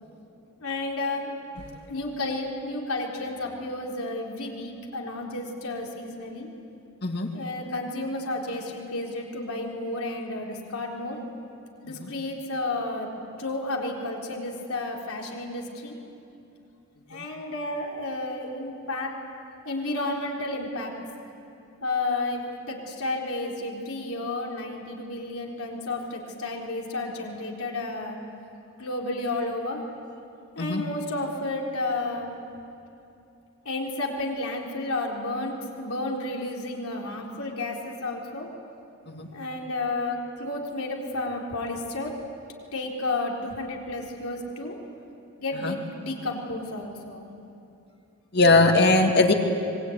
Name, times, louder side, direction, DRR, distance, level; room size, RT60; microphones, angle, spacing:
voice 1, 0.6-1.3 1.9-6.5 7.3-11.2 11.8-13.1 13.4-16.0 17.1-19.1 19.7-20.9 21.8-28.2 28.8-29.8 30.6-32.3 33.7-38.5 39.3-42.1 42.7-44.8 45.4-47.3, left 2 dB, 80° left, -1 dB, 3.9 m, -31 dB
voice 2, 48.3-49.3, left 2 dB, 50° left, 4 dB, 2.2 m, -20 dB
25.0 x 21.5 x 9.5 m, 2.8 s
head